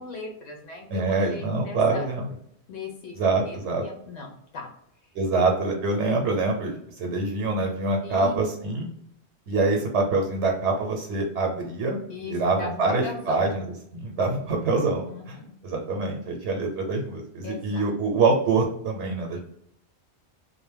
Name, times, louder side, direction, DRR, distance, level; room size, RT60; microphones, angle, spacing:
voice 1, 0.0-2.1 2.7-3.2 3.5-4.7 8.0-8.4 12.1-13.4 15.1-15.5 17.4-17.9, left 3 dB, 85° left, 1 dB, 0.9 m, -38 dB
voice 2, 0.9-2.3 3.2-3.8 5.1-8.9 9.5-12.0 12.3-13.6 13.9-15.4 15.6-19.4, right 3 dB, 80° right, 2 dB, 0.9 m, -25 dB
2.5 x 2.1 x 3.3 m, 0.72 s
omnidirectional pair, 1.1 m